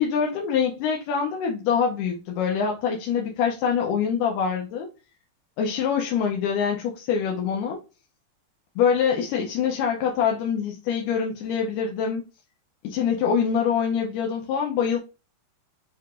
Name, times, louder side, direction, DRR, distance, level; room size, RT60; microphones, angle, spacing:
voice 1, 0.0-4.9 5.6-7.8 8.8-12.2 12.8-15.0, left 7 dB, 80° left, 2.0 m, -24 dB
6.6 x 2.9 x 2.4 m
omnidirectional pair, 4.1 m